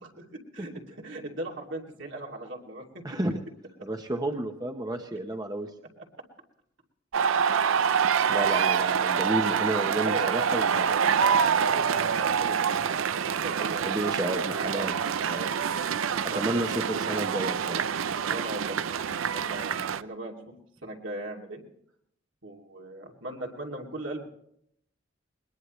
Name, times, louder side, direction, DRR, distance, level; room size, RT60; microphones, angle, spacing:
voice 1, 0.0-2.8 10.0-11.3 11.6-14.4 14.7-15.0 16.3-16.8 18.3-20.5 20.8-21.6 22.4-24.2, right 1 dB, 70° right, 0 dB, 2.7 m, -39 dB
voice 2, 3.0-3.4 3.8-5.7 8.3-10.9 13.6-14.9 15.3-15.5 16.3-17.9, right 1 dB, 20° right, 4 dB, 0.9 m, -31 dB
sound 1, 7.1-20.0, right 7 dB, 90° right, 0.5 m, -26 dB
21.0 x 21.0 x 3.2 m, 0.73 s
head